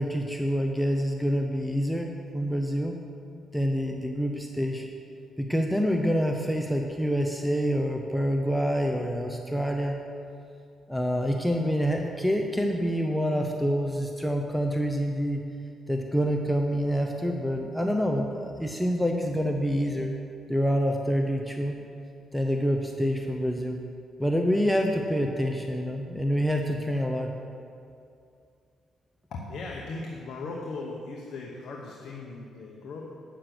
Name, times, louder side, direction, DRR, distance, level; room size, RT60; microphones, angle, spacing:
voice 1, 0.0-3.0 3.5-4.9 5.4-10.0 10.9-15.4 15.9-20.1 20.5-21.8 22.3-23.8 24.2-27.3, equal, ahead, 2 dB, 0.7 m, -27 dB
voice 2, 29.3-33.2, left 3 dB, 70° left, -1 dB, 1.0 m, -38 dB
9.3 x 6.6 x 6.0 m, 2.5 s
cardioid pair, 90°, 0 cm